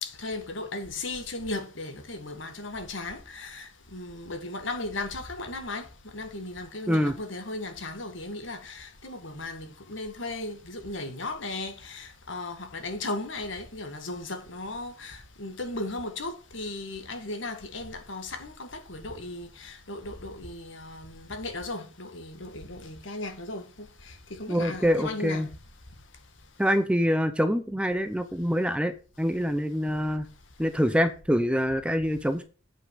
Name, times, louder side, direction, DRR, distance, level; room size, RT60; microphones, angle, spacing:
voice 1, 0.0-25.5, left 2 dB, 65° left, 1.8 m, -36 dB
voice 2, 24.5-25.5 26.6-30.3 30.6-32.4, equal, 5° right, 0.7 m, -25 dB
8.5 x 5.6 x 6.3 m
head